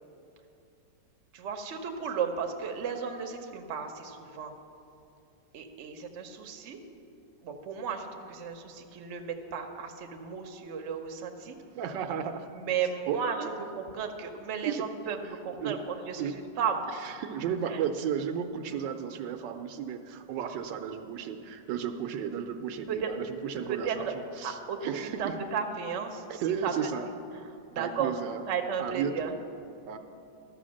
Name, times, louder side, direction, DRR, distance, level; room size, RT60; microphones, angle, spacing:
voice 1, 1.3-4.5 5.5-6.8 7.4-11.6 12.5-17.1 17.7-17.8 22.9-23.1 23.7-24.1 24.4-26.9 27.7-28.2 28.5-29.3, right 6 dB, 50° right, 4 dB, 0.9 m, -34 dB
voice 2, 11.8-12.5 13.1-13.5 14.6-14.8 15.6-15.8 16.2-16.3 17.0-25.4 26.3-27.1 27.8-28.4 28.8-29.3 29.9-30.0, right 8 dB, 80° right, 7 dB, 1.3 m, -34 dB
13.0 x 6.5 x 6.3 m, 2.6 s
omnidirectional pair, 1.9 m